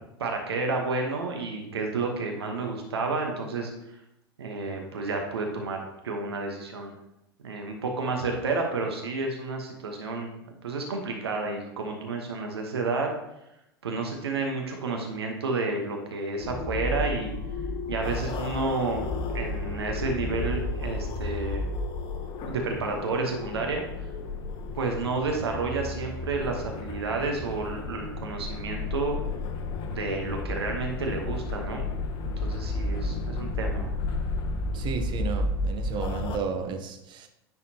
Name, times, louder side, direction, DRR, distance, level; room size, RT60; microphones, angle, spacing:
voice 1, 0.2-3.7 4.4-6.9 7.4-10.3 10.6-13.1 13.8-17.3 17.9-19.1 19.3-21.7 22.5-23.8 24.8-29.1 29.9-31.8 32.2-33.9, right 3 dB, 80° right, 1.1 m, -30 dB
sound 1, 16.4-36.4, left 2 dB, 40° left, 0.9 m, -32 dB
voice 2, 34.7-37.3, right 5 dB, 35° right, 0.9 m, -33 dB
10.0 x 4.2 x 2.9 m
hypercardioid pair, 95°, 13 cm